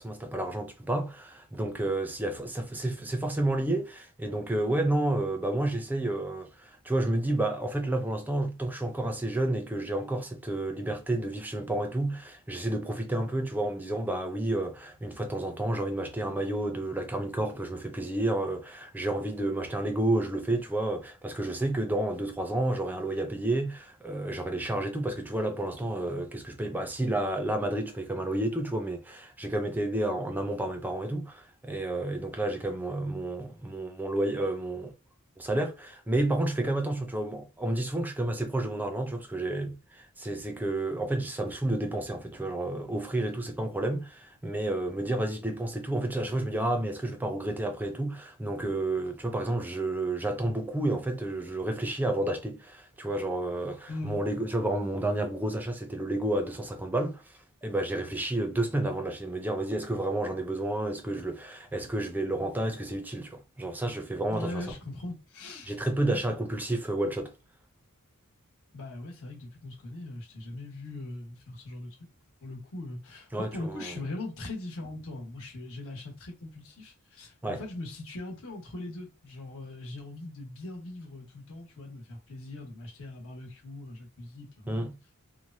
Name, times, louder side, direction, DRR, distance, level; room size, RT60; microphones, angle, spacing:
voice 1, 0.0-34.9 35.4-57.2 57.6-64.7 65.7-67.3 73.3-74.0 77.4-77.6 84.7-85.0, right 1 dB, 10° right, 0.5 m, -30 dB
voice 2, 53.9-54.2 64.3-65.8 66.0-66.2 68.7-72.0 72.4-84.9, left 2 dB, 65° left, 1.2 m, -40 dB
3.1 x 2.1 x 2.6 m
head